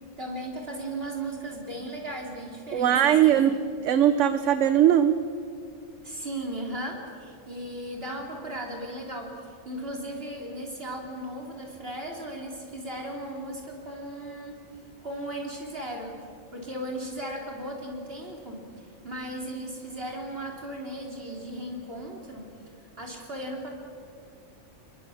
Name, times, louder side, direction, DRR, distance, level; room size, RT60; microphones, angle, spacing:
voice 1, 0.2-3.4 6.0-14.6 15.0-16.1 16.5-18.6 19.0-22.5 23.0-23.7, right 1 dB, 50° right, 0 dB, 4.1 m, -36 dB
voice 2, 2.7-3.5 3.8-5.2, right 10 dB, 75° right, 11 dB, 1.1 m, -20 dB
28.0 x 22.0 x 7.4 m, 2.4 s
omnidirectional pair, 1.3 m